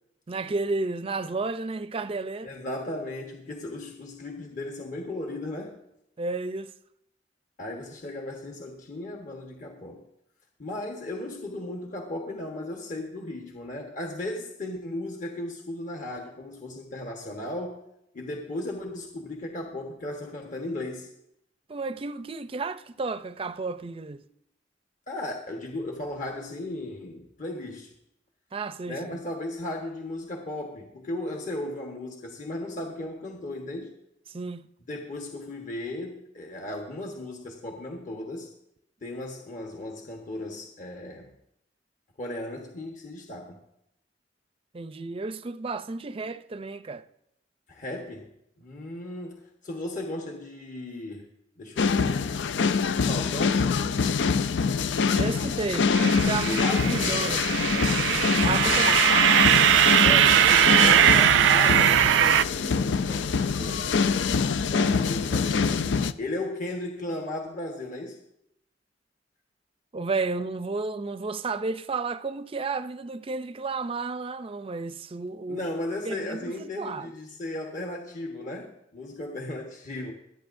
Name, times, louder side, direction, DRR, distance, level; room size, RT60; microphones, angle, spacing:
voice 1, 0.3-2.5 6.2-6.7 21.7-24.2 28.5-29.1 34.3-34.7 44.7-47.0 55.1-57.5 58.4-59.1 69.9-75.7 76.0-77.1, right 3 dB, 30° right, 0.5 m, -32 dB
voice 2, 2.4-5.8 7.6-10.0 10.6-17.8 18.1-21.1 25.1-27.9 28.8-33.9 34.9-38.5 39.0-41.3 42.2-43.6 47.7-48.3 48.6-51.3 51.6-52.5 53.0-53.7 56.4-57.0 60.0-63.9 64.7-68.2 75.5-80.1, left 1 dB, 45° left, 1.3 m, -36 dB
sound 1, 51.8-66.1, left 5 dB, 80° left, 0.5 m, -25 dB
sound 2, 55.9-62.4, right 11 dB, 90° right, 0.3 m, -20 dB
25.0 x 9.2 x 2.6 m
head